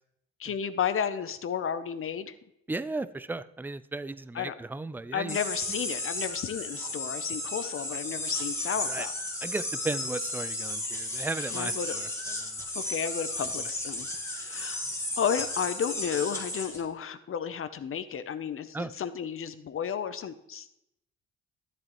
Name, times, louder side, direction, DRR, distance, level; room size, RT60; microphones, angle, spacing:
voice 1, 0.4-2.3 4.3-4.5 5.1-9.1 11.5-12.0 12.7-14.1 14.3-14.9 15.2-20.7, left 8 dB, 45° left, 12 dB, 0.7 m, -32 dB
voice 2, 2.7-5.4 8.9-9.1 9.4-12.1 12.4-12.5 13.6-13.7 18.7-18.9, right 2 dB, 5° right, 15 dB, 0.3 m, -35 dB
sound 1, 5.3-16.8, left 1 dB, 10° left, 1.8 m, -34 dB
12.5 x 7.5 x 3.1 m, 0.80 s
cardioid pair, 90°, 30 cm